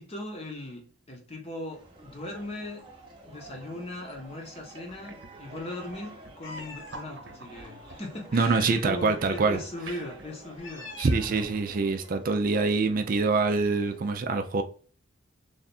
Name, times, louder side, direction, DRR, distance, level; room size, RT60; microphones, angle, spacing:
voice 1, 0.0-2.9 3.3-10.9, left 1 dB, 30° left, 0.9 m, -39 dB
sound 1, 1.7-14.1, right 1 dB, 25° right, 0.7 m, -50 dB
sound 2, 4.1-4.3 4.6-10.3, right 3 dB, 60° right, 0.8 m, -47 dB
Meow, 6.4-7.1 8.3-9.2 10.4-11.6, left 3 dB, 75° left, 1.1 m, -44 dB
voice 2, 8.3-9.6 11.0-14.6, right 4 dB, 45° right, 0.4 m, -25 dB
3.3 x 2.4 x 4.1 m
head